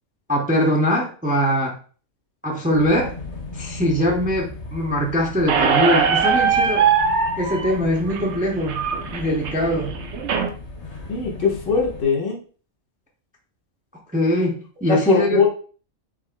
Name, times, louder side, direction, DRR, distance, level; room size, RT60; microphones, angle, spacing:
voice 1, 0.3-1.7 2.4-3.1 3.5-6.9 7.4-8.8 9.1-10.0 14.1-15.4, equal, 10° right, -1 dB, 0.6 m, -22 dB
sound 1, 2.7-12.0, left 3 dB, 35° left, 0.7 m, -36 dB
Squeak, 5.5-10.5, right 6 dB, 60° right, 0.9 m, -21 dB
voice 2, 11.1-12.4 14.9-15.5, left 6 dB, 65° left, -1 dB, 1.7 m, -20 dB
5.8 x 4.0 x 2.2 m, 0.40 s
omnidirectional pair, 1.4 m